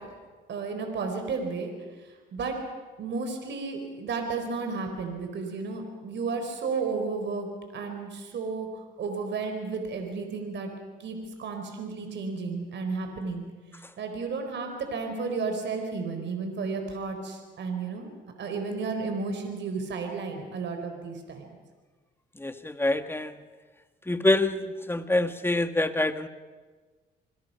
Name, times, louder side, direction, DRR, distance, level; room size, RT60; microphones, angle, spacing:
voice 1, 0.5-1.7 2.0-2.6 3.0-8.7 9.0-10.7 11.0-13.4 14.0-18.1 18.4-21.5, right 4 dB, 65° right, 4 dB, 4.3 m, -33 dB
voice 2, 22.4-23.3 24.1-26.3, left 2 dB, 10° left, 9 dB, 1.6 m, -26 dB
27.5 x 21.5 x 5.7 m, 1.4 s
cardioid pair, 90°, 20 cm